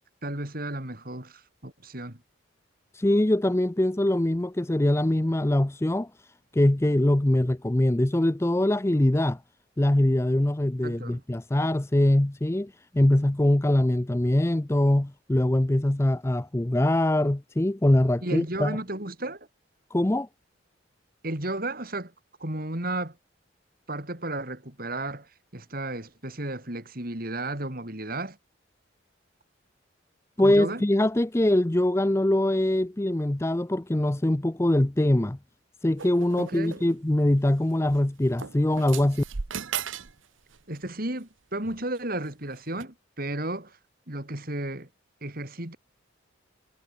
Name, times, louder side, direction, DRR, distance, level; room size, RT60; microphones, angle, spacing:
voice 1, 0.2-2.2 10.8-11.2 18.2-19.5 21.2-22.1 22.4-23.2 23.9-28.4 30.4-30.8 36.4-36.8 40.7-43.8 44.1-44.9 45.2-45.8, right 1 dB, 45° right, 3.8 m, -33 dB
voice 2, 2.9-6.1 6.5-9.4 9.8-18.8 19.9-20.3 30.4-35.4 35.8-39.2, left 1 dB, 15° left, 0.5 m, -23 dB
sound 1, 36.0-37.0 37.9-38.0 38.4-40.2 40.4-40.8 41.6-42.0 42.8-42.9, right 7 dB, 80° right, 1.0 m, -36 dB
head